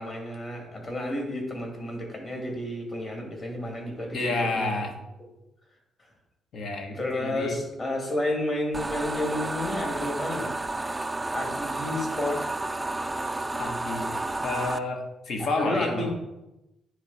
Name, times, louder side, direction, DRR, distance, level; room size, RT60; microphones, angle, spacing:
voice 1, 0.0-4.8 6.0-6.1 6.9-10.5 11.3-12.4 15.4-16.1, left 1 dB, 35° left, 0 dB, 2.2 m, -31 dB
voice 2, 4.1-4.9 6.5-7.5 13.6-14.1 14.4-16.1, left 2 dB, 65° left, 3 dB, 1.2 m, -30 dB
sound 1, 8.7-14.8, right 2 dB, 15° right, 0.3 m, -31 dB
9.5 x 3.2 x 4.0 m, 0.95 s
cardioid pair, 90°, 0 cm